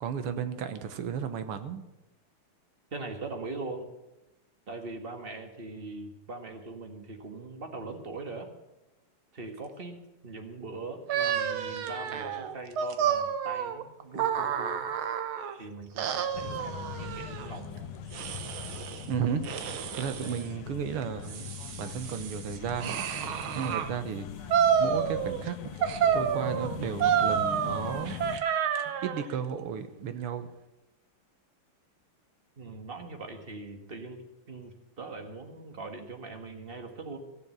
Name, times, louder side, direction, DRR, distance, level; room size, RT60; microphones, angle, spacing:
voice 1, 0.0-1.8 19.1-19.5 20.0-21.5 21.8-23.0 23.6-24.5 24.8-25.7 26.1-28.2 29.0-30.5, right 7 dB, 90° right, 10 dB, 2.0 m, -34 dB
voice 2, 2.9-3.9 4.7-8.5 9.3-10.0 10.2-14.9 15.6-17.9 32.6-34.2 34.5-37.2, right 3 dB, 30° right, 5 dB, 1.6 m, -41 dB
sound 1, 11.1-15.6 16.0-17.5 18.1-19.0 19.4-20.4 21.0-23.9 24.5-25.5 25.8-29.3, right 8 dB, 70° right, 1.7 m, -29 dB
sound 2, 16.3-28.4, left 9 dB, 90° left, 1.8 m, -41 dB
16.0 x 7.2 x 8.8 m, 0.97 s
omnidirectional pair, 2.4 m